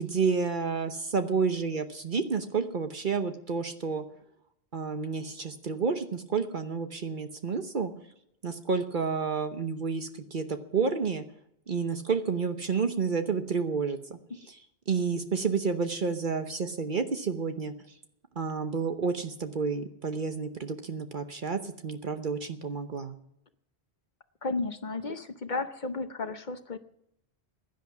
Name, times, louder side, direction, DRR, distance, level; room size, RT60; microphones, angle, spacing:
voice 1, 0.0-4.0 4.7-7.9 8.4-11.2 11.7-14.2 14.5-14.6 14.9-17.7 18.4-23.1, right 5 dB, 55° right, 7 dB, 1.1 m, -30 dB
voice 2, 24.4-26.8, left 3 dB, 50° left, 9 dB, 0.9 m, -33 dB
16.0 x 10.5 x 6.0 m, 0.78 s
omnidirectional pair, 1.1 m